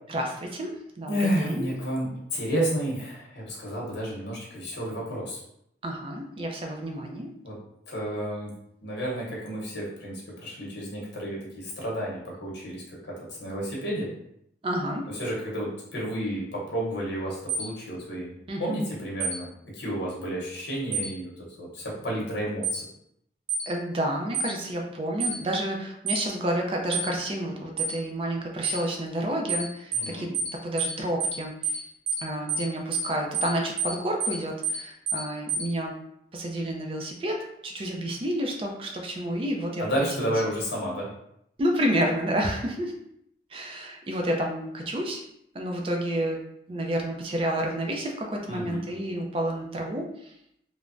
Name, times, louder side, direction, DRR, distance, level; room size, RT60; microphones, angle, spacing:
voice 1, 0.1-1.7 5.8-7.3 14.6-15.1 18.5-18.7 23.7-30.3 30.6-31.8 32.2-36.0 36.3-39.8 40.2-40.3 41.6-43.0 43.5-45.2 45.5-46.4 46.7-50.3, right 1 dB, 30° right, 1 dB, 0.4 m, -30 dB
voice 2, 1.1-5.4 7.4-7.6 7.9-8.5 8.8-14.1 15.1-22.8 29.9-30.4 39.8-41.1 48.5-48.8, equal, 80° left, -4 dB, 0.9 m, -31 dB
sound 1, 17.5-17.7 19.2-19.4 20.9-21.1 22.6-22.8 23.5-23.7 24.3-24.5 25.2-25.4 26.1-26.2 26.9-27.1 27.8-27.9 28.6-28.8 29.5-29.7 29.9-30.1 30.3-30.5 30.8-30.9 31.2-31.4 31.6-31.8 32.1-32.2 32.5-32.7 32.9-33.1 33.3-33.5 33.8-33.9 34.2-34.4 34.6-34.8 35.1-35.2 35.5-35.6, right 6 dB, 60° right, 0.8 m, -28 dB
3.2 x 2.0 x 2.4 m, 0.75 s
head